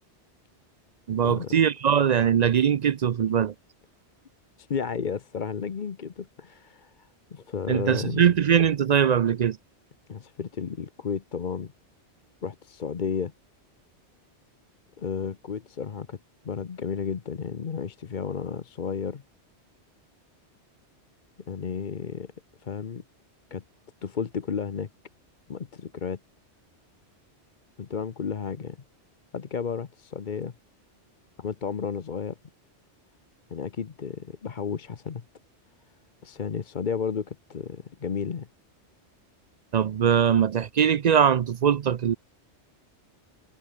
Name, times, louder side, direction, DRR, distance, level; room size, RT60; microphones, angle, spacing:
voice 1, 1.1-3.5 7.7-9.6 39.7-42.1, right 8 dB, 55° right, 0.5 m, -21 dB
voice 2, 4.6-8.2 10.1-11.7 12.4-13.3 15.0-16.2 16.4-19.2 21.5-22.3 22.6-23.0 23.5-23.6 24.0-24.9 25.5-26.2 27.8-28.8 29.3-30.5 31.4-32.3 33.5-35.2 36.2-38.5, left 6 dB, 45° left, 1.0 m, -32 dB
omnidirectional pair, 1.2 m